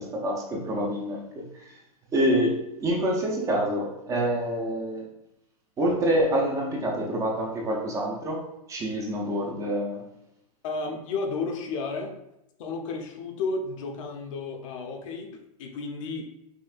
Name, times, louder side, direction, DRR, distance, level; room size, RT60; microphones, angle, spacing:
voice 1, 0.0-1.8 2.1-5.1 5.8-8.4 8.7-10.1, equal, 15° right, -1 dB, 0.5 m, -27 dB
voice 2, 10.6-12.2 12.6-16.2, left 3 dB, 55° left, 3 dB, 0.7 m, -32 dB
5.5 x 2.6 x 2.4 m, 0.86 s
hypercardioid pair, 145°, 20 cm